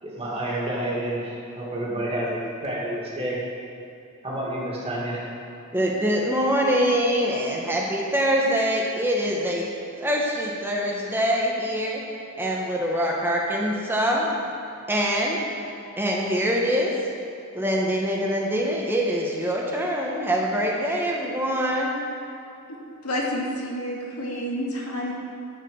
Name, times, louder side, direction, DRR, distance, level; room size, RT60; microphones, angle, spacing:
voice 1, 0.0-3.4 4.2-5.2, right 1 dB, 25° right, -5 dB, 2.1 m, -29 dB
voice 2, 5.7-9.7 10.0-12.0 12.4-14.3 14.9-15.5 16.0-16.9 17.5-21.9, equal, 10° right, -2 dB, 1.0 m, -24 dB
voice 3, 23.0-25.1, equal, 85° left, -3 dB, 1.9 m, -29 dB
11.0 x 4.9 x 6.9 m, 2.7 s
head